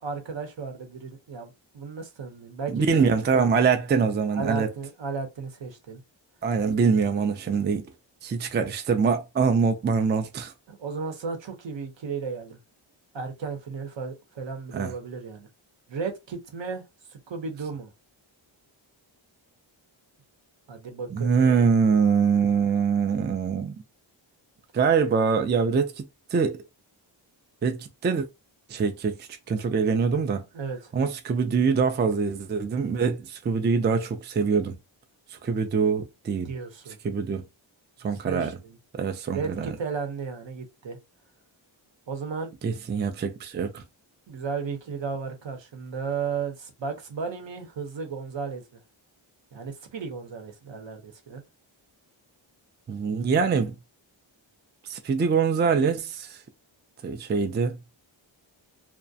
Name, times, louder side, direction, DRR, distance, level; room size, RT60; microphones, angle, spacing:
voice 1, 0.0-3.0 3.3-3.5 4.3-6.0 10.7-12.6 13.1-15.5 15.9-16.8 17.3-17.9 20.7-21.7 30.5-30.9 36.4-37.0 38.3-38.8 39.3-41.0 42.1-42.5 44.3-48.6 49.5-51.4, right 5 dB, 65° right, 0.8 m, -34 dB
voice 2, 2.7-4.7 6.4-7.9 8.2-10.5 14.7-14.9 21.1-23.8 24.7-26.0 26.3-26.6 27.6-28.3 28.7-30.4 30.9-34.8 35.3-36.5 37.0-37.4 38.0-38.5 39.0-39.7 42.6-43.8 52.9-53.7 54.8-56.4 57.0-57.8, right 5 dB, 25° right, 0.3 m, -24 dB
2.3 x 2.1 x 2.6 m
cardioid pair, 65°, 48 cm